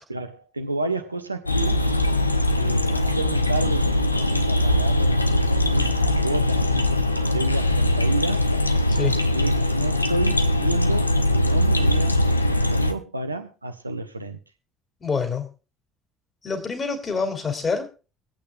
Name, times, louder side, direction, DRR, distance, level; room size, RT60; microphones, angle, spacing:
voice 1, 0.1-1.9 2.6-8.5 9.3-14.4, right 2 dB, 85° right, 0.8 m, -31 dB
sound 1, 1.5-12.9, left 1 dB, 85° left, 0.6 m, -21 dB
voice 2, 15.0-15.5 16.4-17.9, left 5 dB, 30° left, 3.4 m, -26 dB
24.0 x 8.5 x 2.4 m
figure-of-eight pair, 55°, 0 cm